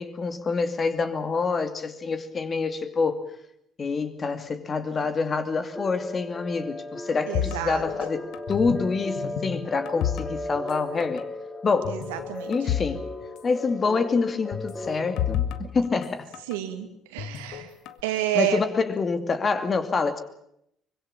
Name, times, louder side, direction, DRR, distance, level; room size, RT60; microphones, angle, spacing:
voice 1, 0.0-3.2 3.8-11.3 11.6-12.0 12.5-13.1 13.4-16.3 18.3-20.2, left 4 dB, 35° left, 9 dB, 2.5 m, -26 dB
sound 1, 5.8-15.4, left 1 dB, 15° left, 4.2 m, -37 dB
sound 2, 7.3-8.9 9.2-10.8 11.0-11.2 11.8-13.0 13.2-13.3 14.5-16.6 17.2-18.0, left 10 dB, 60° left, 1.4 m, -31 dB
voice 2, 7.3-7.8 11.9-12.5 16.5-17.7 18.0-18.6, right 12 dB, 70° right, 8 dB, 2.2 m, -29 dB
24.5 x 22.0 x 7.3 m, 0.75 s
figure-of-eight pair, 50°, 0 cm